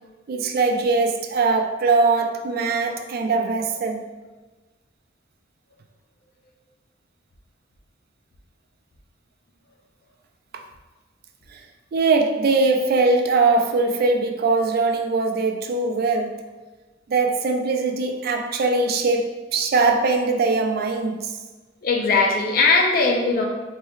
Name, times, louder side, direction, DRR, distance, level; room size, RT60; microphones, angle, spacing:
voice 1, 0.3-4.1 11.5-11.6 11.9-16.4 17.1-21.4, right 3 dB, 55° right, 4 dB, 0.3 m, -21 dB
voice 2, 21.8-23.5, left 3 dB, 50° left, 0 dB, 0.5 m, -19 dB
2.7 x 2.7 x 3.4 m, 1.2 s
head